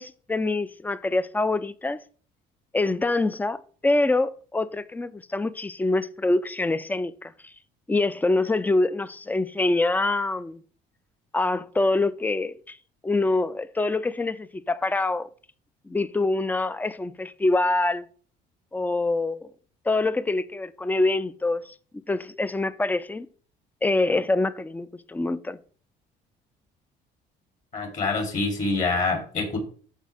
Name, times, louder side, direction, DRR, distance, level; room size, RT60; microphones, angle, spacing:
voice 1, 0.0-2.0 2.7-7.3 7.9-10.6 11.3-12.8 13.0-15.3 15.9-18.0 18.7-19.5 19.9-21.7 22.1-23.3 23.8-25.6, left 2 dB, 10° left, 0.5 m, -25 dB
voice 2, 27.7-29.6, left 3 dB, 45° left, 3.6 m, -26 dB
14.0 x 4.8 x 3.5 m
cardioid pair, 110°, 17 cm